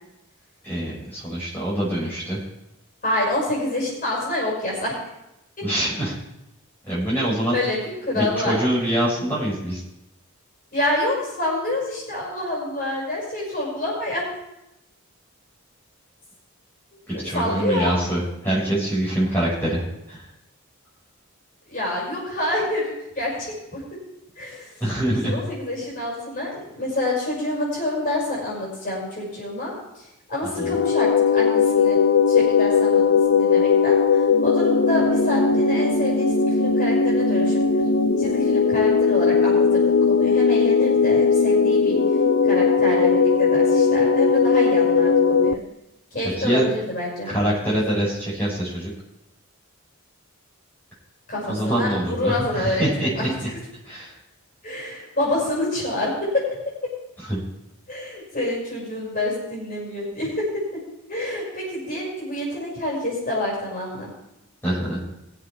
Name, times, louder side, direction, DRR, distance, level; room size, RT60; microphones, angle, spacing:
voice 1, 0.6-2.4 5.6-6.1 6.9-7.5 8.1-9.8 17.1-19.8 20.1-20.2 24.8-25.4 30.6-30.8 46.4-46.7 47.2-48.9 51.5-53.5 53.8-54.1 57.3-57.4 64.6-65.0, right 1 dB, 10° left, -9 dB, 5.7 m, -24 dB
voice 2, 3.0-5.0 7.5-8.6 10.7-14.2 17.1-17.9 21.7-23.3 23.7-23.8 24.4-24.7 25.1-29.7 30.3-32.0 32.3-37.6 38.2-42.0 42.4-45.6 46.1-47.3 51.3-53.3 54.6-56.6 57.9-60.6 61.1-64.1, left 1 dB, 40° left, -5 dB, 5.7 m, -27 dB
sound 1, 30.6-45.5, left 5 dB, 65° left, 0.5 m, -18 dB
22.0 x 7.8 x 3.4 m, 0.88 s
head